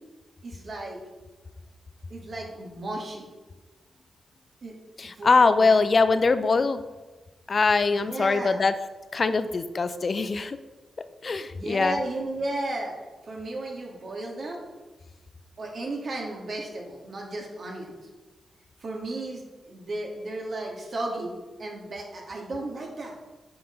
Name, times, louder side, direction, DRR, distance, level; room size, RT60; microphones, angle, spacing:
voice 1, 0.4-1.0 2.1-3.3 4.6-4.7 5.2-5.7 8.0-8.6 11.2-12.9 13.2-14.6 15.6-17.9 18.8-21.3 21.6-23.1, right 2 dB, 60° right, -1 dB, 2.5 m, -34 dB
voice 2, 5.0-6.8 7.5-8.7 9.1-10.6 11.2-12.0, left 4 dB, 50° left, 11 dB, 0.6 m, -22 dB
8.9 x 5.9 x 5.3 m, 1.2 s
supercardioid pair, 45°, 0 cm